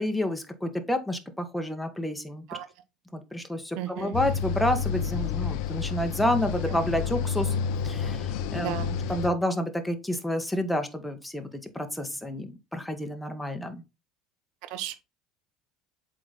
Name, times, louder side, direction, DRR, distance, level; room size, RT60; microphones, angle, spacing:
voice 1, 0.0-2.4 3.1-7.5 7.8-11.5 11.7-13.8, left 1 dB, 5° left, 1.4 m, -29 dB
voice 2, 3.7-4.1 8.5-9.0 14.7-15.0, right 13 dB, 65° right, 0.7 m, -34 dB
sound 1, 4.1-9.3, left 6 dB, 65° left, 0.7 m, -29 dB
7.7 x 3.9 x 4.2 m
hypercardioid pair, 70°, 0 cm